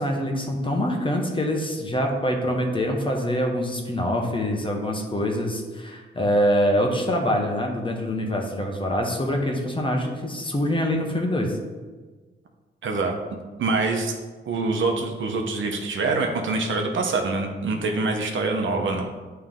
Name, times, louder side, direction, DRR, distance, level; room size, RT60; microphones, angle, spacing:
voice 1, 0.0-11.6, equal, 25° left, 1 dB, 1.1 m, -25 dB
voice 2, 12.8-13.1 13.6-14.2 14.5-19.1, right 3 dB, 75° right, 3 dB, 0.9 m, -25 dB
8.9 x 3.4 x 3.8 m, 1.4 s
cardioid pair, 85°, 20 cm